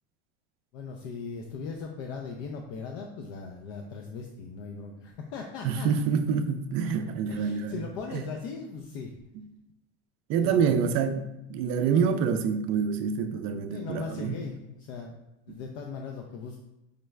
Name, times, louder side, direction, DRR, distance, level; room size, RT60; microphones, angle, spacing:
voice 1, 0.7-6.1 6.8-6.9 7.3-9.1 10.4-10.7 13.7-15.2 15.5-16.6, left 5 dB, 65° left, 2 dB, 0.5 m, -39 dB
voice 2, 5.6-7.7 8.1-8.2 10.3-14.4, right 6 dB, 45° right, 8 dB, 0.4 m, -27 dB
5.1 x 2.3 x 3.1 m, 0.91 s
cardioid pair, 140°, 31 cm